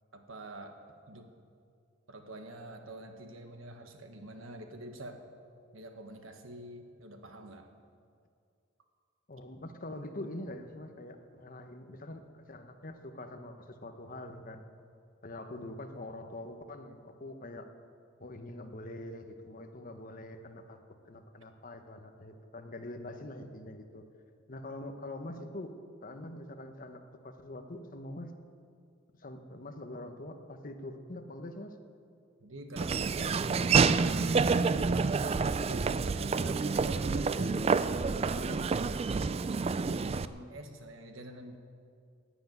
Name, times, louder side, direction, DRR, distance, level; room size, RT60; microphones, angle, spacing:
voice 1, 0.1-0.8 1.1-1.3 2.1-5.2 5.7-7.7 32.4-34.6 35.2-37.7 38.2-38.8 39.8-41.5, right 1 dB, 80° right, 5 dB, 1.4 m, -46 dB
voice 2, 9.3-14.7 15.2-17.7 18.2-20.8 21.0-24.0 24.5-25.7 26.0-28.3 29.2-31.7, left 1 dB, 45° left, 6 dB, 1.1 m, -44 dB
Laughter / Walk footsteps, 32.8-40.3, right 4 dB, 30° right, 0.3 m, -28 dB
11.5 x 10.5 x 9.3 m, 2.3 s
head